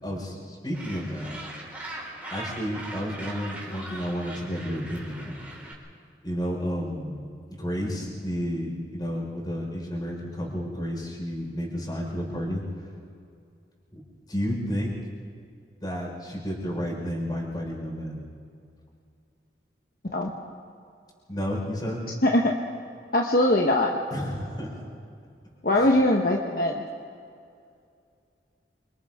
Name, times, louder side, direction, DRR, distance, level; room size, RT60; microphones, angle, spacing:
voice 1, 0.0-1.4 2.3-5.5 6.2-12.9 13.9-14.0 14.3-14.9 15.8-18.3 21.3-22.0 24.1-24.8 25.7-26.0, equal, 25° left, -3 dB, 5.3 m, -31 dB
Gull seagull, 0.7-5.7, right 1 dB, 10° right, 3.7 m, -40 dB
voice 2, 23.1-23.9 25.6-26.8, left 1 dB, 55° left, 0 dB, 1.3 m, -21 dB
27.5 x 26.0 x 3.8 m, 2.4 s
head